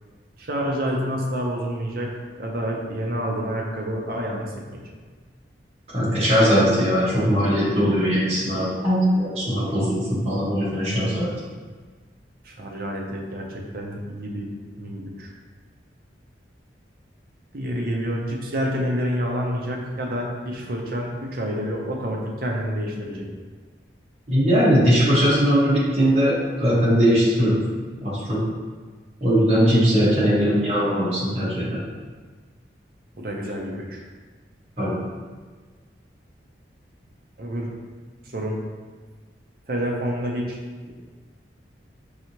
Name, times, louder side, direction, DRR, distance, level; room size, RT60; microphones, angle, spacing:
voice 1, 0.4-2.1 2.4-4.9 12.4-14.5 14.8-15.3 17.5-23.3 33.1-34.0 37.4-37.7 38.2-38.6 39.7-40.6, equal, 50° right, -1 dB, 0.7 m, -28 dB
voice 2, 5.9-11.3 24.3-26.3 26.6-27.6 28.0-28.4 29.2-31.8 34.8-35.0, equal, 35° right, -9 dB, 1.4 m, -20 dB
4.7 x 2.8 x 3.0 m, 1.4 s
head